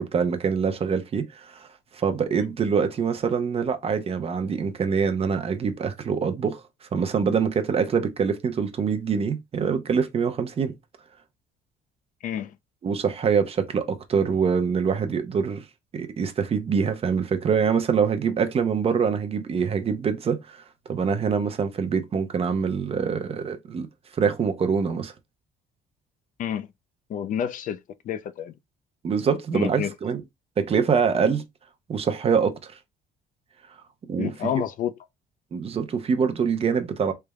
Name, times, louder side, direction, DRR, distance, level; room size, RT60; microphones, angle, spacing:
voice 1, 0.0-1.7 1.9-6.6 6.9-10.7 12.8-15.7 15.9-20.6 20.9-23.9 24.2-25.1 29.0-30.2 30.6-31.4 31.9-32.7 34.1-34.5 35.5-37.1, right 6 dB, 35° right, 0.7 m, -24 dB
voice 2, 12.2-12.6 26.4-26.7 27.1-27.8 28.0-28.5 29.5-29.9 34.2-34.9, left 9 dB, 50° left, 0.4 m, -29 dB
3.3 x 2.1 x 3.4 m
cardioid pair, 110°, 17 cm